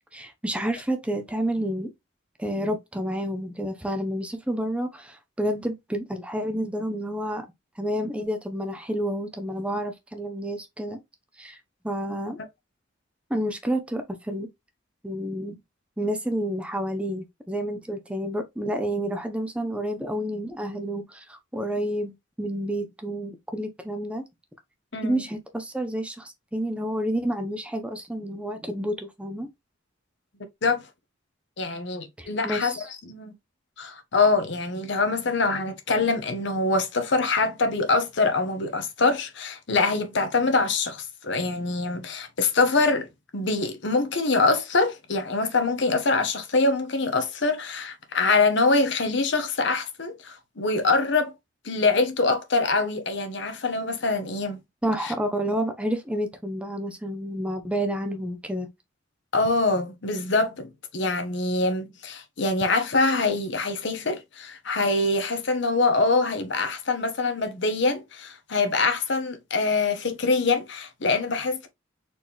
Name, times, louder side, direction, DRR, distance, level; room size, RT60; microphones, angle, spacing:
voice 1, 0.1-1.9 2.4-7.5 7.8-11.0 11.4-11.6 11.8-12.4 13.3-14.5 15.0-15.6 16.0-24.2 25.0-29.5 32.2-32.8 54.8-58.7, equal, 5° right, 0.6 m, -29 dB
voice 2, 24.9-25.2 30.6-30.9 31.6-32.7 33.1-33.3 33.8-51.3 51.6-54.6 55.0-55.1 59.3-71.7, left 3 dB, 60° left, 0.9 m, -24 dB
4.3 x 3.0 x 3.4 m
head